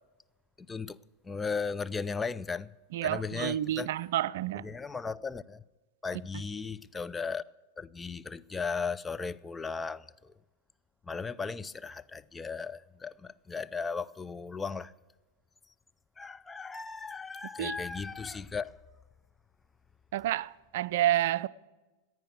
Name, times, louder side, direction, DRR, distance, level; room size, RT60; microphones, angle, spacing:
voice 1, 0.6-1.0 1.2-2.7 3.0-3.9 4.6-5.6 6.0-7.4 7.8-10.3 11.0-14.9 16.2-18.8, left 5 dB, 15° left, 0.4 m, -36 dB
voice 2, 2.9-4.6 17.6-17.8 20.1-21.5, right 13 dB, 65° right, 0.4 m, -29 dB
15.0 x 9.4 x 8.2 m
hypercardioid pair, 105°, 0 cm